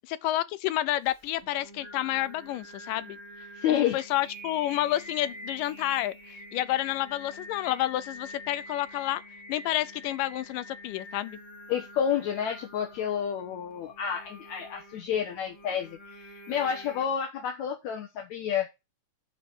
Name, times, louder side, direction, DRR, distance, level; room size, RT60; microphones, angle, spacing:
voice 1, 0.2-3.2 3.7-9.2 9.5-11.4, left 14 dB, 90° left, 2.4 m, -30 dB
Singing, 1.1-17.0, left 1 dB, 40° left, 0.4 m, -46 dB
voice 2, 3.5-4.0 11.7-16.2 16.5-18.7, left 8 dB, 65° left, 2.2 m, -29 dB
9.9 x 4.0 x 7.2 m
omnidirectional pair, 3.7 m